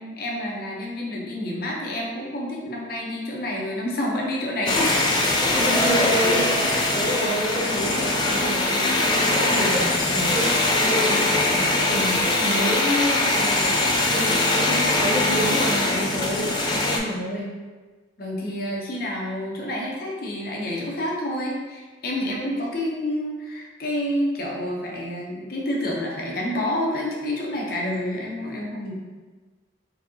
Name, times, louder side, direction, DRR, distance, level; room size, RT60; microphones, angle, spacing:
voice 1, 0.0-5.2 6.2-6.3 18.2-28.9, left 1 dB, 50° left, -2 dB, 0.7 m, -28 dB
sound 1, 4.7-17.0, left 2 dB, 25° left, 0.3 m, -22 dB
voice 2, 5.5-13.7 14.1-17.5 22.2-22.3, equal, 5° right, -7 dB, 0.7 m, -28 dB
Keyboard (musical), 5.7-8.2, right 6 dB, 50° right, 0.9 m, -34 dB
3.9 x 2.7 x 2.7 m, 1.3 s
head